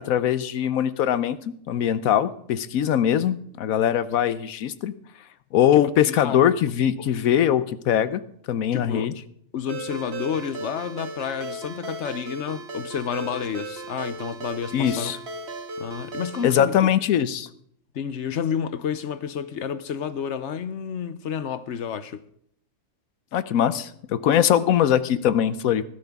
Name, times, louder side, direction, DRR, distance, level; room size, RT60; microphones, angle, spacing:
voice 1, 0.0-1.4 1.7-4.9 5.5-8.2 8.5-9.1 14.7-15.2 16.4-17.5 23.3-25.8, left 10 dB, 85° left, 1.1 m, -21 dB
voice 2, 5.7-6.5 7.0-7.1 8.7-9.1 9.5-15.1 15.8-16.9 17.9-22.2 24.5-24.6, left 7 dB, 60° left, 1.0 m, -30 dB
Ringtone, 9.7-16.6, right 2 dB, 50° right, 1.6 m, -36 dB
18.5 x 12.0 x 3.6 m
omnidirectional pair, 1.4 m